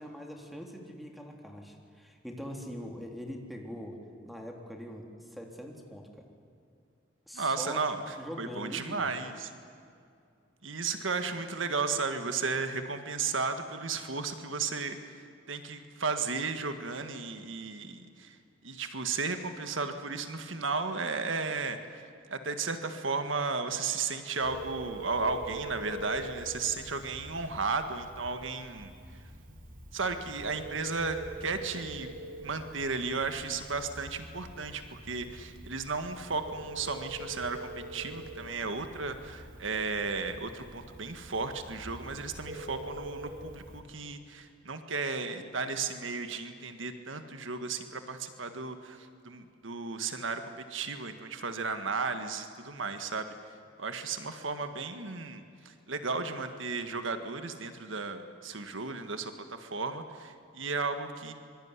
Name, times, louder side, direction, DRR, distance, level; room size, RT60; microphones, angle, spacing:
voice 1, 0.0-4.0 4.2-6.2 7.3-7.8 8.2-9.1, equal, ahead, 1 dB, 3.5 m, -42 dB
voice 2, 7.3-9.5 10.6-18.4 18.6-22.0 22.3-28.9 29.9-32.1 32.4-50.4 50.7-53.3 53.8-61.3, right 4 dB, 70° right, 7 dB, 1.8 m, -34 dB
Telephone, 24.4-43.8, right 1 dB, 45° right, 4.2 m, -45 dB
25.0 x 23.5 x 9.8 m, 2.4 s
head